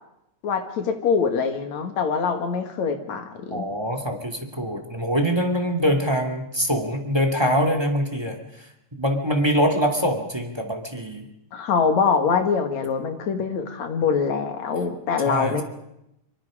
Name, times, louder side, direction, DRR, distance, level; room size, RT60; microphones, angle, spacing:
voice 1, 0.4-3.7 11.5-15.6, left 5 dB, 70° left, 6 dB, 3.2 m, -24 dB
voice 2, 3.5-8.4 9.0-11.3 15.2-15.6, equal, 10° right, 5 dB, 2.0 m, -24 dB
25.5 x 24.0 x 5.0 m, 0.82 s
omnidirectional pair, 3.3 m